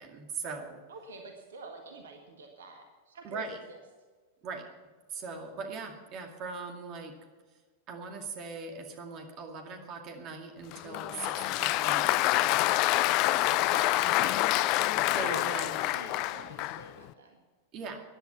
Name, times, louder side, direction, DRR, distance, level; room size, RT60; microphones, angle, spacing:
voice 1, 0.0-0.8 3.2-3.6 4.4-4.7 5.1-7.1 7.9-12.4 15.2-15.8 17.7-18.0, right 4 dB, 35° right, 4 dB, 2.2 m, -40 dB
voice 2, 0.9-3.8 13.7-17.4, right 2 dB, 65° right, 4 dB, 1.7 m, -46 dB
Applause, 10.7-16.9, left 16 dB, 40° left, 0.5 m, -27 dB
15.0 x 10.5 x 5.8 m, 1.4 s
figure-of-eight pair, 90°, 0 cm